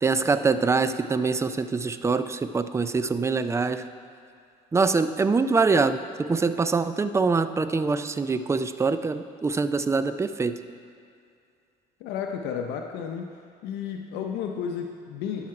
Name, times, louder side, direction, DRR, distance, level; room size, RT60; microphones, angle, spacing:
voice 1, 0.0-3.8 4.7-10.5, right 4 dB, 15° right, 11 dB, 0.4 m, -24 dB
voice 2, 12.0-13.3 13.6-15.5, left 7 dB, 85° left, 3 dB, 0.6 m, -32 dB
12.0 x 5.7 x 4.8 m, 2.3 s
cardioid pair, 110°, 17 cm